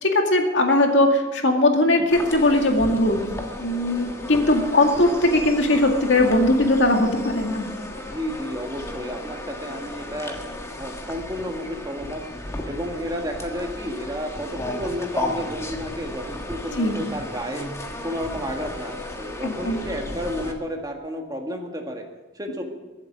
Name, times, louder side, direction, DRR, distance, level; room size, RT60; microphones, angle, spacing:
voice 1, 0.0-3.2 3.6-7.7 16.8-17.0 19.4-19.8, left 1 dB, 80° left, 3 dB, 2.2 m, -19 dB
sound 1, 2.1-20.5, left 1 dB, 15° left, 1.6 m, -34 dB
voice 2, 8.0-10.4 10.8-12.2 12.7-17.7 18.0-22.0 22.4-22.6, equal, 20° right, 2 dB, 1.8 m, -31 dB
23.0 x 8.0 x 6.2 m, 1.2 s
head